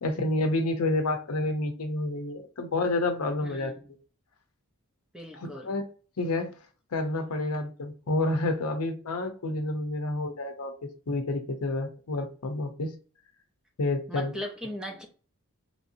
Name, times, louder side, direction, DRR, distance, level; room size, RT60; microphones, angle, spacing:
voice 1, 0.0-3.7 5.4-5.8 6.2-6.5 6.9-10.7 11.1-12.9 13.8-14.3, left 2 dB, 80° left, 6 dB, 0.6 m, -29 dB
voice 2, 3.4-3.9 5.1-5.8 14.1-15.1, left 1 dB, 5° right, 1 dB, 0.5 m, -38 dB
3.1 x 2.8 x 2.6 m, 0.38 s
head